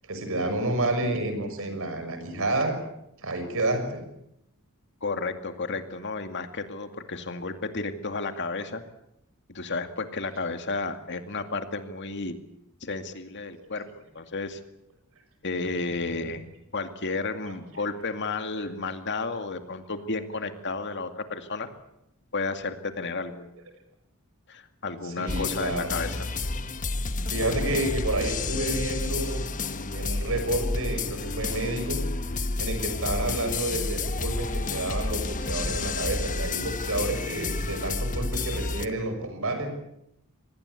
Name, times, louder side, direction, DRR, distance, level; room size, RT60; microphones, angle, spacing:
voice 1, 0.0-2.8 3.2-4.1 17.4-17.5 25.0-25.9 27.3-29.5 29.9-32.0 32.6-39.7, right 2 dB, 65° right, 7 dB, 6.3 m, -29 dB
voice 2, 5.0-8.8 9.5-12.3 12.8-13.9 14.1-14.6 15.4-16.4 16.7-21.7 22.3-23.5 24.5-26.3, left 3 dB, 55° left, 7 dB, 2.3 m, -32 dB
sound 1, 25.3-38.9, left 3 dB, 35° left, 1.2 m, -30 dB
26.0 x 20.0 x 8.4 m, 0.81 s
head